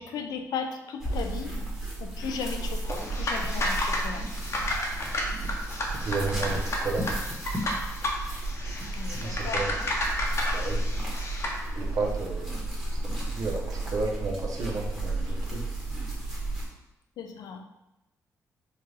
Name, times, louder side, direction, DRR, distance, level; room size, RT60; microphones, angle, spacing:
voice 1, 0.0-1.6 2.0-4.3 8.9-9.7 17.2-17.6, left 6 dB, 80° left, 5 dB, 0.4 m, -36 dB
sound 1, 1.0-16.7, right 2 dB, 5° right, 1.2 m, -33 dB
sound 2, 2.8-11.6, left 1 dB, 45° left, 0.8 m, -32 dB
voice 2, 6.0-7.1 9.1-9.7 10.5-10.8 11.8-12.6 13.0-15.6, right 3 dB, 65° right, 0 dB, 0.8 m, -32 dB
4.5 x 2.4 x 3.3 m, 0.93 s
cardioid pair, 80°, 7 cm